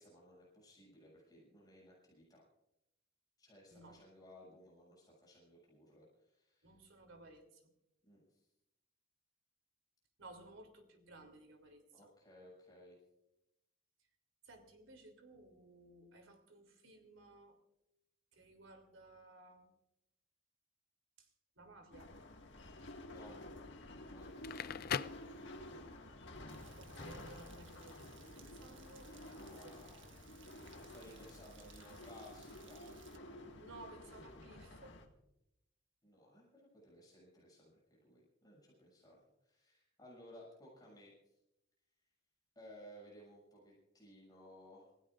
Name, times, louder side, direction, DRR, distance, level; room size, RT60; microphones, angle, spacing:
voice 1, 0.0-2.4 3.4-6.8 8.0-8.4 11.9-13.0 23.1-23.5 24.1-25.0 29.4-30.1 30.6-33.1 34.3-34.4 36.0-41.3 42.6-44.9, equal, 20° left, -5 dB, 6.9 m, -59 dB
voice 2, 6.6-7.6 10.2-11.8 14.4-17.6 18.3-19.7 21.2-21.3 21.6-22.1 26.8-29.7 33.5-35.0, right 2 dB, 85° right, 5 dB, 3.1 m, -57 dB
sound 1, 21.9-35.1, left 1 dB, 65° left, 1.9 m, -52 dB
Crackle, 24.2-26.0, left 8 dB, 50° left, 0.4 m, -41 dB
Rain, 26.5-33.2, right 8 dB, 70° right, 1.5 m, -63 dB
27.5 x 16.0 x 2.5 m, 0.85 s
head